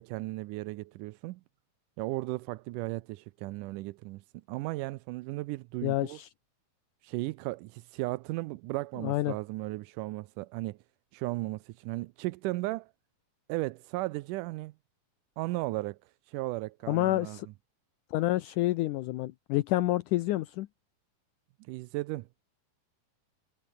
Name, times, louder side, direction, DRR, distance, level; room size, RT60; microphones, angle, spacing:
voice 1, 0.0-1.4 2.0-6.2 7.0-10.8 11.1-12.9 13.5-14.7 15.4-17.4 21.6-22.3, right 20 dB, 80° right, 2.0 m, -35 dB
voice 2, 5.8-6.3 9.0-9.3 16.9-17.5 18.1-20.7, left 16 dB, 75° left, 2.1 m, -28 dB
omnidirectional pair, 3.9 m